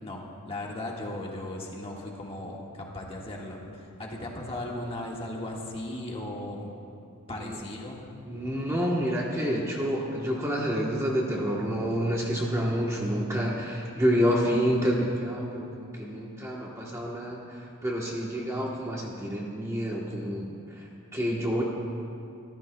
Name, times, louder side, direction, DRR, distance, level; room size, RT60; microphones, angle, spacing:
voice 1, 0.0-6.7 7.3-8.0, left 1 dB, 25° left, -2 dB, 1.6 m, -37 dB
voice 2, 8.2-21.6, equal, 15° right, -3 dB, 1.0 m, -28 dB
25.5 x 14.0 x 2.2 m, 2.6 s
head